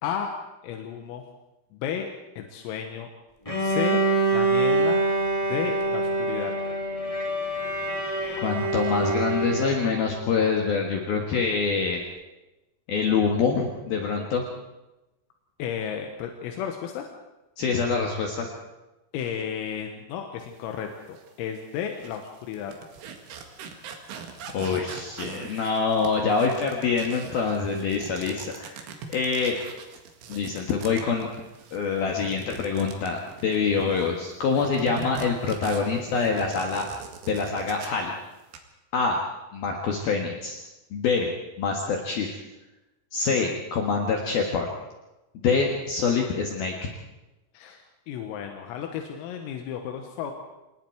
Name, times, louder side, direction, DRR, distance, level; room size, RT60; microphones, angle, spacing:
voice 1, 0.0-0.3 0.6-1.2 1.7-2.1 2.4-3.1 3.6-4.0 4.3-5.0 5.5-6.5 15.6-17.1 19.1-22.7 47.5-50.3, left 8 dB, 85° left, 4 dB, 4.1 m, -33 dB
Bowed string instrument, 3.5-10.2, right 2 dB, 30° left, 0.6 m, -25 dB
voice 2, 8.4-12.0 12.9-14.4 17.6-18.5 24.5-29.5 30.3-31.3 31.7-36.8 37.3-38.1 38.9-39.3 39.5-40.6 40.9-41.3 41.6-42.4 43.1-44.7 45.3-46.9, left 5 dB, 60° left, 1 dB, 3.0 m, -25 dB
sound 1, 21.2-21.3 21.8-34.1 34.5-38.1 38.4-38.6, right 6 dB, 70° right, 4.3 m, -42 dB
27.0 x 20.0 x 4.7 m, 1.0 s
omnidirectional pair, 5.9 m